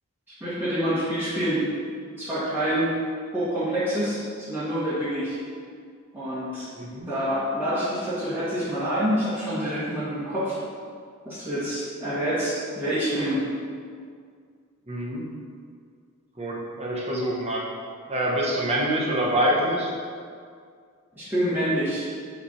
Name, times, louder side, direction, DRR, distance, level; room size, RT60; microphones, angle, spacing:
voice 1, 0.4-1.7 2.2-3.0 3.3-5.4 6.1-6.7 7.1-10.6 11.2-13.4 21.1-22.1, equal, 10° right, -12 dB, 1.4 m, -27 dB
voice 2, 6.8-7.1 14.9-15.3 16.4-17.6 18.1-19.9, right 1 dB, 30° right, -3 dB, 0.9 m, -25 dB
7.0 x 3.3 x 4.3 m, 2.1 s
head